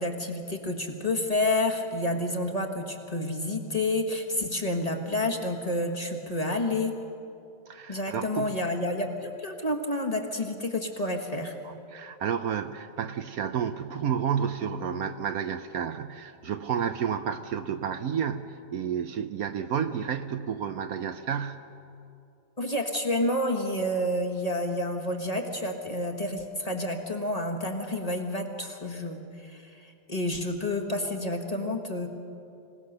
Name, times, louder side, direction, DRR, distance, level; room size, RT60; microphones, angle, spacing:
voice 1, 0.0-6.9 7.9-11.5 22.6-32.1, left 1 dB, 25° left, 2 dB, 1.6 m, -29 dB
voice 2, 7.7-8.6 11.6-21.6, right 8 dB, 65° right, 9 dB, 1.1 m, -31 dB
26.0 x 17.5 x 6.7 m, 2.7 s
omnidirectional pair, 1.8 m